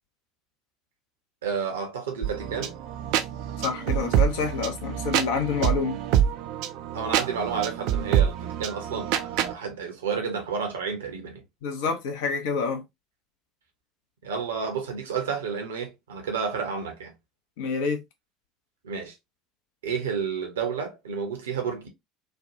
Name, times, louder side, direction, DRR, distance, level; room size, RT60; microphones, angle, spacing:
voice 1, 1.4-2.7 6.9-11.4 14.2-17.1 18.8-19.2 19.8-21.9, right 6 dB, 70° right, 0.8 m, -31 dB
sound 1, 2.2-9.5, right 10 dB, 55° right, 0.4 m, -26 dB
voice 2, 3.6-6.0 11.6-12.8 17.6-18.0, left 5 dB, 60° left, 0.7 m, -27 dB
3.3 x 2.2 x 2.7 m
figure-of-eight pair, 70°, 0 cm